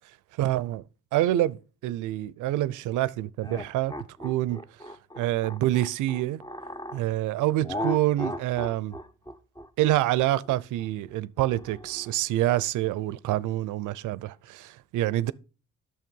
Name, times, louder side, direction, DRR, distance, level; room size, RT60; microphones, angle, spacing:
voice 1, 0.4-0.8 1.1-3.9 4.2-4.6 5.2-6.4 6.9-9.0 9.8-15.3, right 14 dB, 85° right, 0.6 m, -26 dB
sound 1, 3.4-7.0 7.6-12.1, equal, 15° left, 0.8 m, -36 dB
9.3 x 6.9 x 5.3 m
cardioid pair, 90°, 30 cm